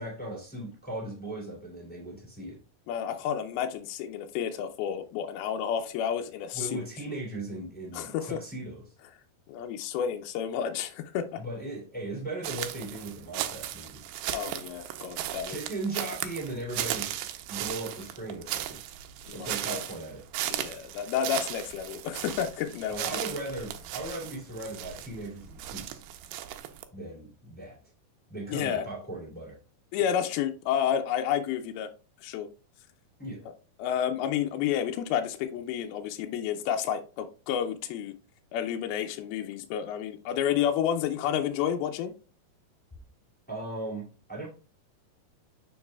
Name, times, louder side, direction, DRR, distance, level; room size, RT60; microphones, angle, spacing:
voice 1, 0.0-2.6 6.5-8.9 11.4-14.0 15.4-17.2 17.5-18.8 19.3-20.2 22.9-26.0 26.9-27.8 28.3-29.6 33.2-33.4 43.5-44.5, right 2 dB, 5° left, 1.3 m, -38 dB
voice 2, 2.9-6.8 7.9-8.4 9.5-11.4 14.3-15.6 19.3-19.8 20.5-23.2 28.5-28.8 29.9-31.9 32.2-32.5 33.8-38.2 38.5-42.1, left 9 dB, 80° left, 2.3 m, -30 dB
sound 1, 12.4-26.8, right 12 dB, 80° right, 2.5 m, -36 dB
7.1 x 6.5 x 2.2 m
omnidirectional pair, 4.6 m